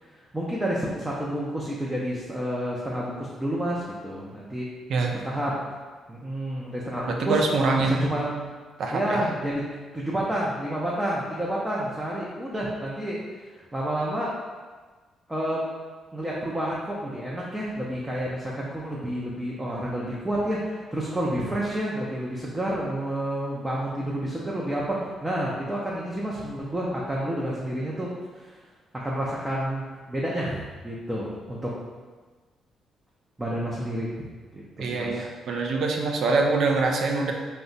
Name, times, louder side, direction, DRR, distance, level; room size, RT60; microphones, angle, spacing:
voice 1, 0.0-4.7 5.2-5.6 6.1-7.4 7.8-8.5 8.9-9.6 9.9-14.4 15.3-15.6 16.1-28.1 28.3-28.6 29.0-31.7 33.4-34.1 34.5-35.2, right 1 dB, 10° right, -6 dB, 0.5 m, -29 dB
voice 2, 7.1-8.0 8.8-9.2 34.8-37.3, right 3 dB, 65° right, 2 dB, 0.4 m, -24 dB
2.7 x 2.2 x 3.9 m, 1.4 s
cardioid pair, 90°, 0 cm